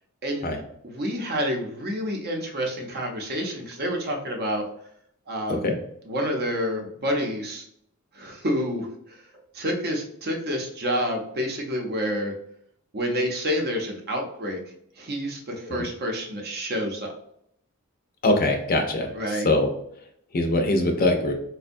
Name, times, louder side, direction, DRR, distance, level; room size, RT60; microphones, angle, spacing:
voice 1, 0.8-4.7 5.3-5.7 6.0-7.7 8.1-9.2 9.5-12.3 12.9-14.6 15.0-17.1 19.1-19.5, equal, 45° right, 2 dB, 0.6 m, -28 dB
voice 2, 18.2-19.7 20.3-21.3, left 2 dB, 40° left, 4 dB, 0.5 m, -22 dB
4.3 x 2.2 x 2.5 m, 0.71 s
head